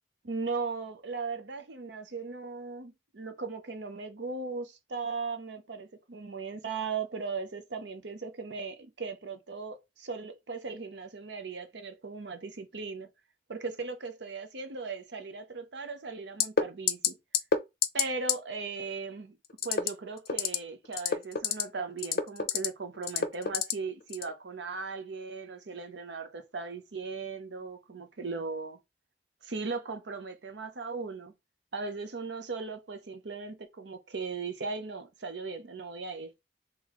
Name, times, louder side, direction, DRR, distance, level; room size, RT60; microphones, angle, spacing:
voice 1, 0.2-13.1 13.5-17.2 17.9-19.4 19.6-28.8 29.4-31.3 31.7-36.4, right 4 dB, 65° right, 0.7 m, -38 dB
sound 1, 16.4-16.6 16.9-17.1 17.3-17.6 17.8-18.0 18.3-18.4 19.6-19.9 20.3-20.6 20.9-21.6 22.0-22.7 23.1-23.7 24.1-24.3, left 7 dB, 55° left, 0.5 m, -25 dB
3.8 x 3.0 x 3.0 m
head